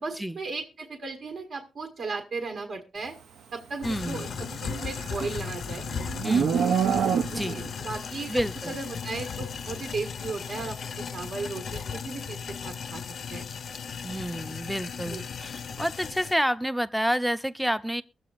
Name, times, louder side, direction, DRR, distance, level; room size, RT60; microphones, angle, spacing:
voice 1, 0.0-3.2 3.5-4.3 4.6-5.8 7.3-13.0 13.3-13.4 15.0-15.2, right 3 dB, 60° right, 1.6 m, -36 dB
sound 1, 3.8-16.3, left 6 dB, 60° left, 0.5 m, -36 dB
voice 2, 3.8-4.3 6.2-6.6 7.3-7.6 8.3-8.8 14.0-18.0, equal, ahead, 0.5 m, -29 dB
Livestock farm animals working animals, 4.4-7.7, right 7 dB, 80° right, 0.6 m, -27 dB
22.5 x 7.7 x 2.5 m
wide cardioid pair, 135°, 0 cm